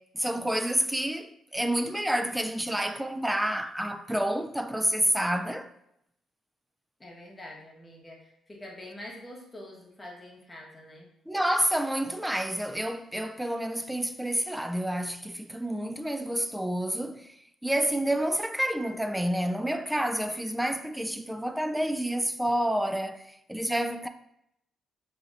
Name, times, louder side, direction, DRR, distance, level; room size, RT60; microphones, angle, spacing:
voice 1, 0.1-5.7 11.3-17.3 17.6-24.1, right 1 dB, 5° right, 0.3 m, -29 dB
voice 2, 7.0-11.1, left 1 dB, 20° left, 1.2 m, -45 dB
5.3 x 3.0 x 2.5 m
cardioid pair, 90°, 0 cm